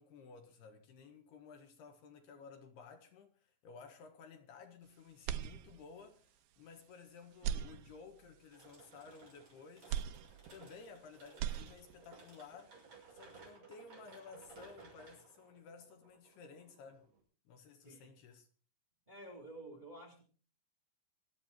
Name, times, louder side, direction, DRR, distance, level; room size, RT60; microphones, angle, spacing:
voice 1, 0.0-12.8 13.1-17.1 17.5-18.5, left 5 dB, 70° left, 3.5 m, -55 dB
sound 1, 5.2-6.1 6.6-6.7 7.3-8.4 9.9-11.0 11.3-12.2, right 10 dB, 75° right, 2.8 m, -40 dB
sound 2, 8.5-17.2, right 4 dB, 35° right, 7.9 m, -58 dB
voice 2, 19.1-20.2, right 1 dB, 10° right, 3.2 m, -51 dB
26.0 x 8.7 x 4.5 m
omnidirectional pair, 5.1 m